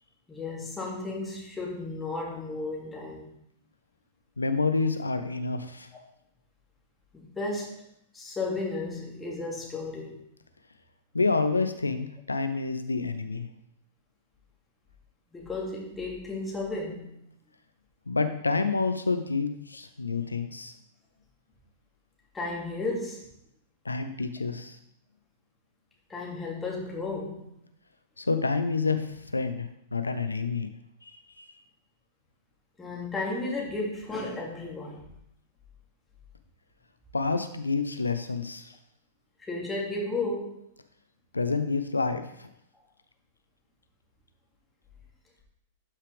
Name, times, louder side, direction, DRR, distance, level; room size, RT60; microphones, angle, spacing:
voice 1, 0.3-3.3 7.1-7.8 8.1-10.2 15.3-17.2 22.3-23.3 26.1-27.5 32.8-35.1 39.4-40.6, left 2 dB, 10° left, -2 dB, 2.3 m, -34 dB
voice 2, 4.4-5.9 11.1-13.5 18.1-20.7 23.8-24.8 28.2-29.1 29.3-30.7 31.4-31.5 37.1-38.7 41.3-42.5, left 4 dB, 80° left, 9 dB, 0.6 m, -28 dB
12.0 x 5.6 x 3.4 m, 0.76 s
figure-of-eight pair, 100°, 0 cm